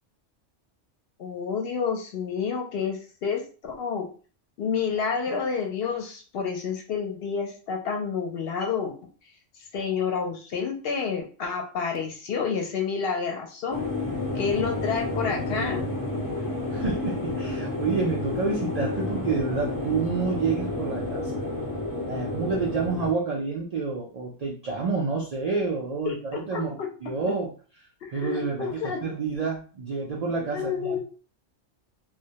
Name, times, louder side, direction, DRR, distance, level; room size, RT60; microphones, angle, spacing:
voice 1, 1.2-4.1 4.6-8.9 9.7-13.8 14.3-15.9 26.1-26.9 28.1-29.0 30.5-31.0, left 6 dB, 65° left, 1 dB, 0.7 m, -29 dB
sound 1, 13.7-23.1, left 2 dB, 30° left, 0.3 m, -30 dB
voice 2, 16.7-21.3 22.1-27.5 28.1-31.0, right 4 dB, 70° right, -2 dB, 0.3 m, -29 dB
2.1 x 2.1 x 2.7 m, 0.39 s
omnidirectional pair, 1.2 m